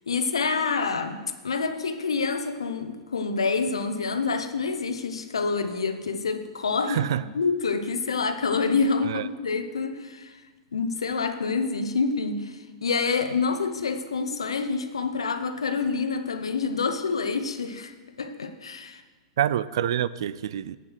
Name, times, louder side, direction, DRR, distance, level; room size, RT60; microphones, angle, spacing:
voice 1, 0.1-7.0 7.3-10.4 10.7-19.0, left 4 dB, 85° left, 9 dB, 0.8 m, -27 dB
voice 2, 6.9-7.2 9.0-9.3 19.4-20.8, right 11 dB, 70° right, 18 dB, 0.4 m, -26 dB
8.4 x 7.3 x 6.4 m, 1.3 s
hypercardioid pair, 110°, 3 cm